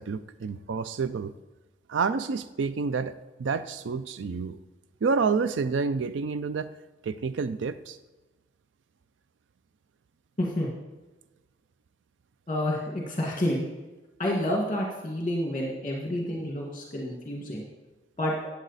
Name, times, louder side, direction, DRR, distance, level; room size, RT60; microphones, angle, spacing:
voice 1, 0.0-1.3 1.9-3.1 3.4-4.6 5.0-6.7 7.0-8.0, right 5 dB, 80° right, 13 dB, 0.4 m, -28 dB
voice 2, 10.4-10.7 12.5-13.7 14.2-17.7 18.2-18.3, left 1 dB, 30° left, -2 dB, 1.8 m, -29 dB
14.0 x 8.5 x 4.1 m, 1.1 s
head